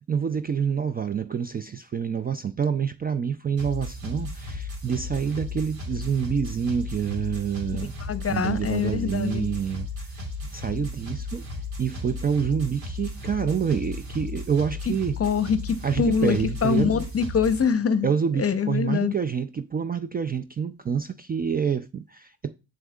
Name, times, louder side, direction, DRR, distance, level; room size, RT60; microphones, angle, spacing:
voice 1, 0.1-7.9 8.3-10.2 10.5-11.5 11.8-15.2 15.8-17.0 18.0-22.5, right 7 dB, 25° right, 0.3 m, -27 dB
sound 1, 3.6-17.6, left 2 dB, 80° right, 2.7 m, -35 dB
voice 2, 8.0-9.5 15.2-18.1 18.4-19.1, left 6 dB, 35° left, 0.8 m, -24 dB
7.7 x 6.4 x 2.3 m
hypercardioid pair, 50°, 43 cm